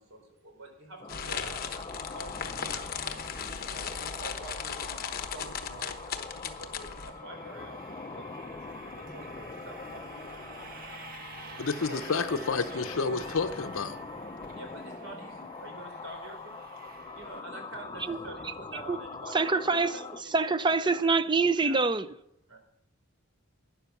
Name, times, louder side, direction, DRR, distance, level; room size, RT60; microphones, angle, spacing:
voice 1, 0.0-3.1 3.4-10.7 11.7-12.4 12.7-13.3 14.5-21.0 21.6-21.8 22.5-22.6, right 2 dB, 75° right, 4.6 m, -48 dB
sound 1, 1.0-20.2, left 4 dB, 25° left, 0.6 m, -43 dB
sound 2, 1.1-7.1, left 6 dB, 45° left, 1.1 m, -37 dB
sound 3, 3.0-17.4, right 3 dB, 45° right, 1.5 m, -50 dB
voice 2, 11.6-14.0, left 4 dB, 70° left, 0.7 m, -30 dB
voice 3, 19.3-22.1, right 4 dB, 20° right, 0.6 m, -26 dB
12.5 x 10.0 x 5.9 m
head